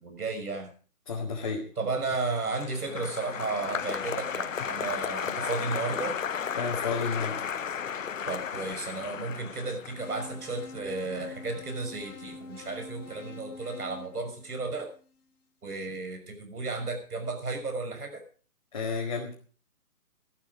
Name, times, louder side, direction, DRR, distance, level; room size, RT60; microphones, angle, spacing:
voice 1, 0.0-0.7 1.8-6.2 8.3-14.9 15.6-18.2, right 3 dB, 75° right, 6 dB, 6.0 m, -33 dB
voice 2, 1.1-1.6 6.5-7.3 18.7-19.3, left 5 dB, 25° left, -4 dB, 2.0 m, -31 dB
Applause, 2.0-12.4 12.6-13.2, left 7 dB, 60° left, 0.7 m, -35 dB
sound 1, 10.0-15.1, left 3 dB, 75° left, 2.0 m, -46 dB
14.0 x 12.0 x 5.0 m, 0.40 s
hypercardioid pair, 180°, 45 cm